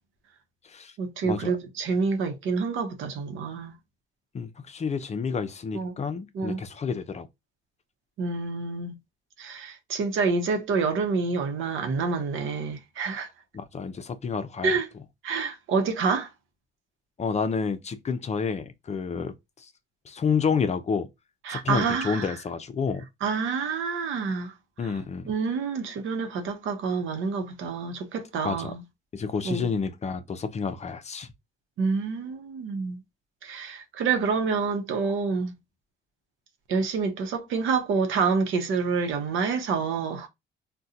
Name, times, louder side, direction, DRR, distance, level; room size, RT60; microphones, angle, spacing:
voice 1, 1.0-3.7 5.7-5.9 6.3-6.6 8.2-8.9 9.4-13.3 14.6-14.9 15.2-16.3 21.4-22.4 23.2-24.5 24.8-24.9 25.3-28.8 29.4-29.7 31.8-33.0 33.4-35.5 36.7-40.3, right 5 dB, 80° right, 0.8 m, -27 dB
voice 2, 4.3-7.3 13.5-14.7 17.2-19.7 20.1-21.1 21.5-23.0 24.8-25.3 28.4-28.7 29.1-31.3, left 5 dB, 35° left, 0.5 m, -29 dB
3.7 x 2.2 x 2.7 m
cardioid pair, 90°, 20 cm